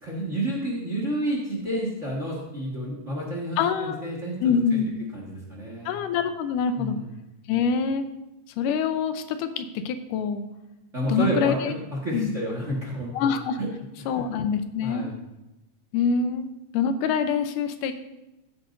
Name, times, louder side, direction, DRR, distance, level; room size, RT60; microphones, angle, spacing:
voice 1, 0.0-4.8 5.1-6.0 6.7-7.1 10.9-13.3 13.6-13.7 14.0-14.3 14.8-15.1, right 1 dB, 35° right, -2 dB, 1.3 m, -30 dB
voice 2, 3.6-4.0 4.4-5.0 5.9-7.0 7.5-8.0 8.6-10.4 11.1-11.7 12.1-12.3 13.2-13.6 14.1-15.1 15.9-16.5 16.7-17.9, left 6 dB, 85° left, 9 dB, 2.3 m, -25 dB
15.0 x 8.5 x 2.6 m, 0.95 s
omnidirectional pair, 3.6 m